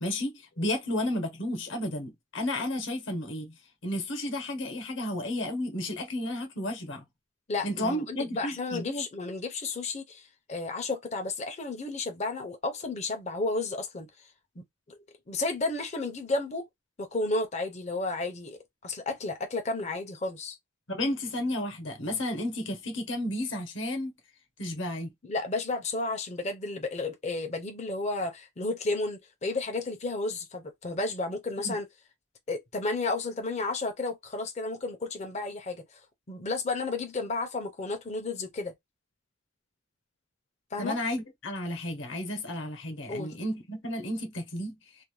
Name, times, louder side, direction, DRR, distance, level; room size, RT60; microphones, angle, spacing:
voice 1, 0.0-3.5 3.8-7.0 7.6-9.1 20.9-24.1 24.6-25.1 31.6-31.7 40.8-44.8, left 1 dB, 60° left, 0.9 m, -32 dB
voice 2, 7.5-14.1 14.9-15.0 15.3-16.7 17.0-20.6 25.2-31.9 32.5-35.8 36.3-38.7 40.7-41.0 43.1-43.4, left 3 dB, 30° left, 0.5 m, -32 dB
2.5 x 2.1 x 3.0 m
head